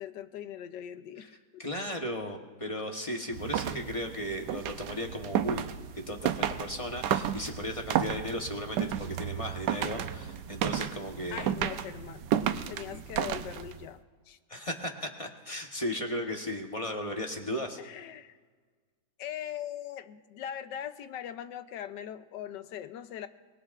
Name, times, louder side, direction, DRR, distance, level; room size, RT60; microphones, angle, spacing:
voice 1, 0.0-1.7 3.6-3.9 11.3-12.3 12.7-14.4 17.8-18.4 19.2-23.3, left 10 dB, 85° left, 11 dB, 1.3 m, -41 dB
voice 2, 1.6-5.7 6.1-11.6 12.9-13.0 14.5-17.8, left 1 dB, 25° left, 2 dB, 0.9 m, -36 dB
sound 1, 3.3-13.9, right 10 dB, 85° right, 1.3 m, -33 dB
24.0 x 20.0 x 2.5 m, 1.5 s
omnidirectional pair, 1.8 m